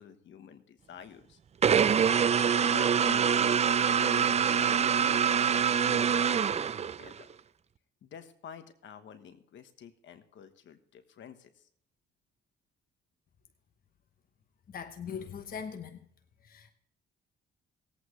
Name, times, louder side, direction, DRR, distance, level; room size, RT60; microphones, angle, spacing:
voice 1, 0.0-1.4 2.0-7.3 8.0-11.7, left 8 dB, 70° left, 1.3 m, -49 dB
sound 1, 1.6-7.2, right 7 dB, 35° right, 0.5 m, -25 dB
voice 2, 14.7-16.0 16.4-16.7, left 7 dB, 45° left, 1.0 m, -40 dB
19.5 x 8.4 x 3.2 m
cardioid pair, 90°, 20 cm